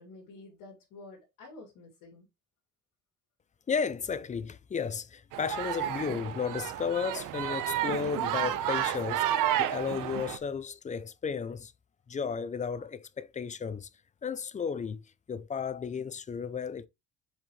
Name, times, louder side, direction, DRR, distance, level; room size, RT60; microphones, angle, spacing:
voice 1, 0.0-2.3, left 2 dB, 85° left, 3.1 m, -50 dB
voice 2, 3.7-11.7 12.1-13.9 14.2-15.0 15.3-16.9, left 6 dB, 25° left, 0.5 m, -34 dB
sound 1, 5.3-10.4, right 11 dB, 80° right, 0.9 m, -31 dB
7.3 x 5.0 x 3.2 m
cardioid pair, 130°, 32 cm